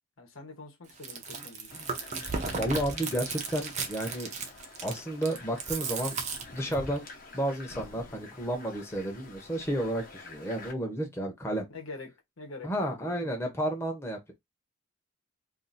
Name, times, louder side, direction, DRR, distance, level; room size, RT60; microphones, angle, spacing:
voice 1, 0.2-1.8 11.7-13.4, left 3 dB, 90° left, 1.0 m, -45 dB
Chewing mastication, 0.9-7.0, right 4 dB, 35° right, 0.6 m, -35 dB
sound 1, 1.7-10.7, left 3 dB, 45° left, 0.8 m, -48 dB
voice 2, 2.6-4.3 4.8-6.2 6.5-7.1 7.3-11.7 12.6-14.3, right 1 dB, 15° left, 0.8 m, -32 dB
2.7 x 2.5 x 3.9 m
head